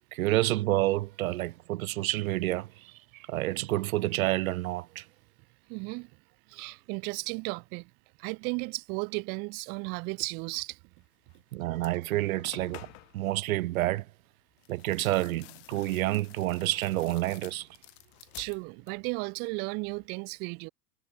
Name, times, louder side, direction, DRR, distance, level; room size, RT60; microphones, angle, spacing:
voice 1, 0.1-2.7 3.3-5.0 11.5-12.9 13.1-14.0 14.7-17.7, right 17 dB, 70° right, 0.8 m, -28 dB
voice 2, 5.7-6.1 6.5-7.9 8.2-10.8 18.4-20.7, right 32 dB, 25° right, 0.6 m, -34 dB
sound 1, 11.3-11.4 11.7-13.2 14.6-19.2 19.5-20.1, left 24 dB, 45° left, 5.7 m, -51 dB
supercardioid pair, 170°, 43 cm